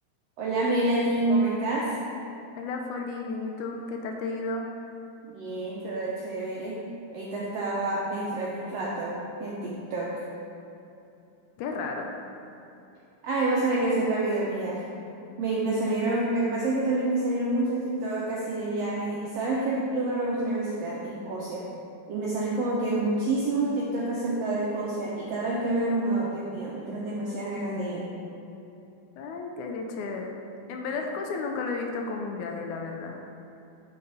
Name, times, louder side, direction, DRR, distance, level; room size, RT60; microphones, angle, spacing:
voice 1, 0.4-1.9 5.2-6.8 7.1-10.2 13.2-14.8 15.4-21.7 22.1-28.1, right 2 dB, 80° right, -5 dB, 1.4 m, -28 dB
voice 2, 2.6-4.7 11.6-12.1 29.2-30.4 30.7-33.2, left 3 dB, 80° left, 2 dB, 1.9 m, -33 dB
9.3 x 4.2 x 3.9 m, 2.8 s
omnidirectional pair, 3.7 m